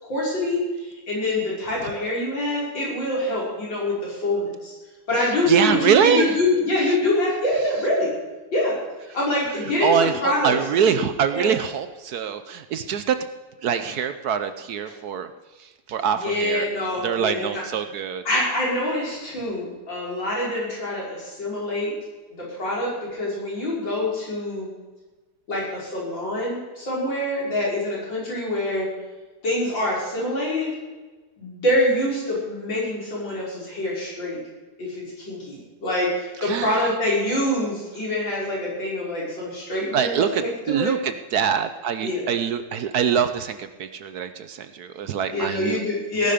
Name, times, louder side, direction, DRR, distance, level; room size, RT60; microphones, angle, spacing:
voice 1, 0.0-4.7 5.1-8.1 8.5-8.8 9.1-10.6 10.9-11.0 11.3-11.5 14.9-15.0 16.1-17.6 18.2-21.9 22.4-24.7 25.5-28.9 29.4-30.7 31.4-34.4 34.8-41.0 42.0-42.2 45.3-46.3, left 1 dB, 90° left, -5 dB, 6.2 m, -25 dB
voice 2, 5.5-6.3 6.9-7.0 9.8-13.2 13.6-15.3 15.6-16.7 17.0-18.2 36.4-36.9 39.9-45.8, right 7 dB, 65° right, 10 dB, 1.2 m, -24 dB
18.5 x 11.5 x 5.1 m, 1.3 s
omnidirectional pair, 2.0 m